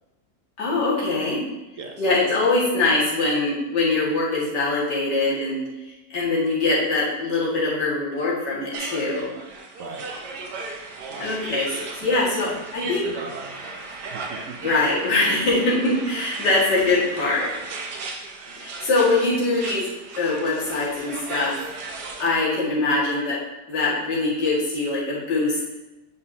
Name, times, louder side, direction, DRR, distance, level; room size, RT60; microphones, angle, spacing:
voice 1, 0.6-1.4 2.0-9.3 11.2-13.0 14.6-17.5 18.6-19.9 20.2-21.5 22.2-23.4 23.7-25.7, left 2 dB, 80° left, -7 dB, 2.7 m, -23 dB
sound 1, 8.7-22.4, right 3 dB, 75° right, 1.4 m, -36 dB
voice 2, 9.8-10.1 11.1-11.4 12.0-12.6 12.8-14.7, right 4 dB, 60° right, 3 dB, 0.9 m, -39 dB
9.3 x 5.6 x 2.8 m, 1.1 s
omnidirectional pair, 1.8 m